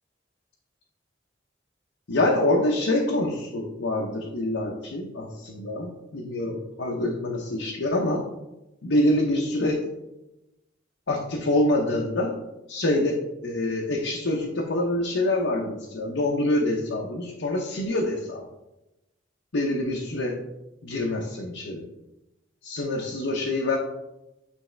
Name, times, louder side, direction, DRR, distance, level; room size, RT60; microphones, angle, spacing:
voice 1, 2.1-8.2 8.8-9.8 11.1-12.3 12.7-18.4 19.5-20.4 20.8-21.8 22.6-23.8, left 1 dB, 75° left, -1 dB, 0.8 m, -26 dB
8.8 x 3.5 x 3.3 m, 0.94 s
head